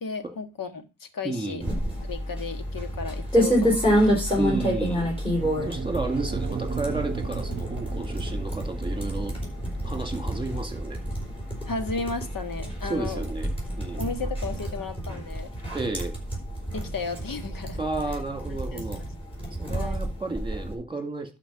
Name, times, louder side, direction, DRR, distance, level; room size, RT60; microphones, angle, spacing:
voice 1, 0.0-1.6 1.9-4.3 11.7-13.2 14.0-15.5 16.7-17.8 18.5-19.1 19.7-20.1, left 4 dB, 85° left, 8 dB, 1.6 m, -34 dB
voice 2, 1.2-1.7 4.4-5.1 5.7-9.3 9.8-11.0 12.9-13.5 13.8-14.1 15.7-16.1 17.8-19.0 19.6-21.4, right 3 dB, 15° right, 5 dB, 2.1 m, -32 dB
sound 1, 1.6-20.7, equal, 15° left, 4.2 m, -29 dB
sound 2, 5.4-13.6, right 6 dB, 35° right, 0.9 m, -37 dB
12.0 x 4.7 x 5.7 m, 0.30 s
wide cardioid pair, 140°, 33 cm